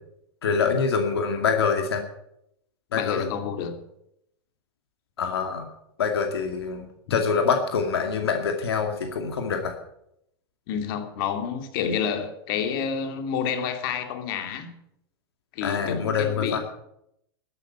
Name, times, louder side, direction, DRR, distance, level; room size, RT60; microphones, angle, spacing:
voice 1, 0.4-2.0 2.9-3.3 5.2-5.7 6.0-9.7 15.6-16.6, left 5 dB, 90° left, 4 dB, 2.3 m, -25 dB
voice 2, 2.9-3.8 7.1-7.2 10.7-14.7 15.5-16.6, left 7 dB, 65° left, 6 dB, 2.7 m, -29 dB
13.5 x 11.0 x 8.3 m, 0.77 s
hypercardioid pair, 110°, 13 cm